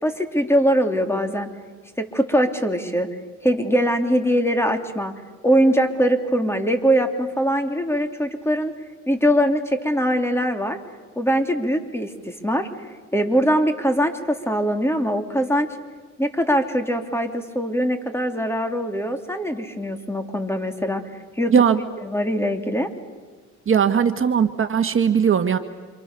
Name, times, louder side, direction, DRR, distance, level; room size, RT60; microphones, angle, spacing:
voice 1, 0.0-1.5 2.0-3.1 3.4-5.2 5.4-8.7 9.1-10.8 11.2-15.8 16.2-21.5 22.0-22.9, equal, 10° left, 6 dB, 3.3 m, -22 dB
voice 2, 21.5-21.8 23.7-25.6, right 7 dB, 45° right, 7 dB, 1.6 m, -18 dB
30.0 x 27.5 x 6.9 m, 1.5 s
cardioid pair, 90°, 30 cm